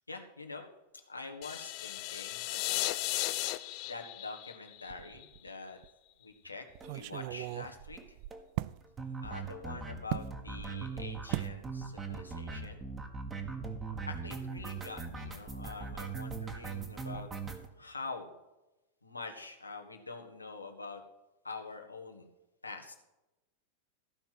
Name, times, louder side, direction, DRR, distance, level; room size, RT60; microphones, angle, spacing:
voice 1, 0.1-0.7 1.1-2.9 3.8-5.8 6.2-8.2 9.2-12.8 13.8-17.3 17.8-18.3 19.0-21.0 21.4-22.3 22.6-23.0, left 3 dB, 80° left, 3 dB, 1.6 m, -45 dB
sound 1, 1.4-5.5, left 18 dB, 45° left, 0.5 m, -36 dB
sound 2, 4.9-5.5 5.8-5.9 6.7-8.8 10.1-10.3 11.3-11.6 11.9-12.2 12.5-12.7, right 20 dB, 45° right, 0.3 m, -38 dB
sound 3, 6.8-7.0 7.3-7.4 7.6-7.7 8.0-8.1 8.3-17.7, right 5 dB, 20° right, 1.6 m, -40 dB
14.5 x 5.8 x 7.6 m, 0.99 s
figure-of-eight pair, 90°, 0 cm